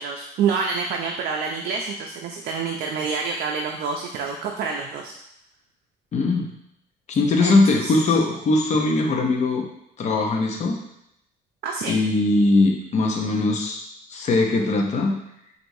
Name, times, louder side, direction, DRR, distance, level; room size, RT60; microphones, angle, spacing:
voice 1, 0.0-5.1 7.4-8.2 11.6-12.0, right 5 dB, 65° right, 1 dB, 0.4 m, -27 dB
voice 2, 6.1-6.5 7.1-9.7 10.0-10.8 11.9-13.8 14.1-15.1, left 3 dB, 45° left, 1 dB, 0.7 m, -20 dB
4.6 x 2.6 x 2.6 m, 0.78 s
cardioid pair, 110°, 17 cm